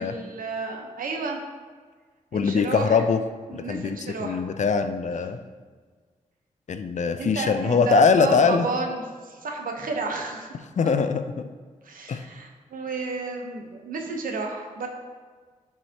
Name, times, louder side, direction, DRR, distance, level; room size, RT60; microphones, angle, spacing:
voice 1, 0.0-1.4 2.3-3.0 3.5-4.4 7.2-10.5 10.8-10.9 11.8-14.9, right 4 dB, 80° right, 2 dB, 1.0 m, -31 dB
voice 2, 2.3-3.2 3.5-5.4 6.7-8.7 10.8-11.2 12.1-12.2, left 5 dB, 60° left, 9 dB, 0.6 m, -22 dB
11.0 x 4.9 x 2.9 m, 1.5 s
cardioid pair, 60°, 14 cm